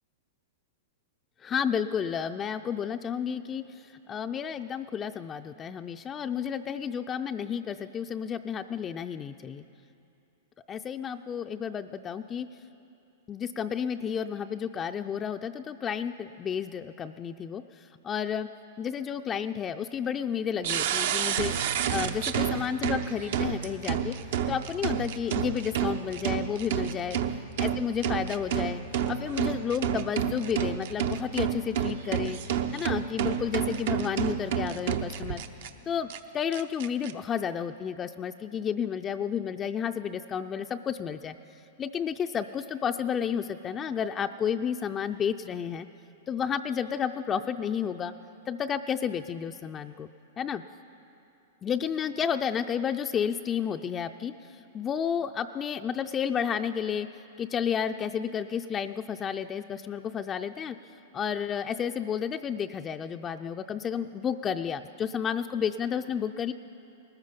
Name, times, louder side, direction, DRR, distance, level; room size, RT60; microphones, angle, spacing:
voice 1, 1.4-9.6 10.7-12.5 13.3-18.5 18.8-21.5 21.9-24.2 24.5-27.2 27.6-28.8 29.1-32.4 32.7-35.4 35.9-41.4 41.8-45.9 46.3-48.1 48.5-50.1 50.4-50.6 51.6-57.1 57.4-60.8 61.1-66.5, left 7 dB, 25° left, 7 dB, 0.4 m, -31 dB
sound 1, 20.6-35.7 36.1-36.2 36.5-37.1, right 8 dB, 65° right, 0.7 m, -30 dB
19.0 x 14.0 x 5.2 m, 2.8 s
hypercardioid pair, 120°, 0 cm